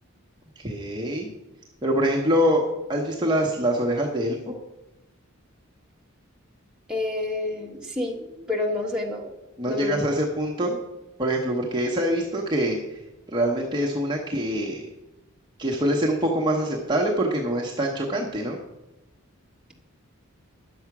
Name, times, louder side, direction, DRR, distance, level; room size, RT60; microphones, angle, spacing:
voice 1, 0.6-1.3 1.8-4.5 9.6-10.8 11.2-13.0 13.3-14.9 15.6-18.6, equal, 20° right, -1 dB, 1.0 m, -24 dB
voice 2, 6.9-9.3 9.7-10.0, left 2 dB, 5° right, -2 dB, 1.4 m, -29 dB
10.0 x 7.2 x 5.9 m, 0.97 s
head